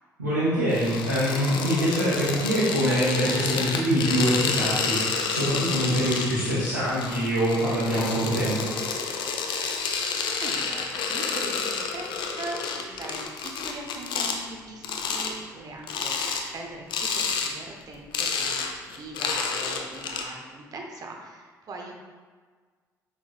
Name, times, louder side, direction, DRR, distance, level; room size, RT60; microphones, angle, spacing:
voice 1, 0.2-8.7, equal, 90° right, -13 dB, 1.2 m, -24 dB
sound 1, 0.7-14.4 14.8-15.3 15.8-16.4 16.9-17.5 17.8-20.2, left 5 dB, 55° left, 0.5 m, -29 dB
voice 2, 10.4-21.9, right 2 dB, 40° right, 1 dB, 0.8 m, -41 dB
6.0 x 3.4 x 2.3 m, 1.5 s
figure-of-eight pair, 45°, 9 cm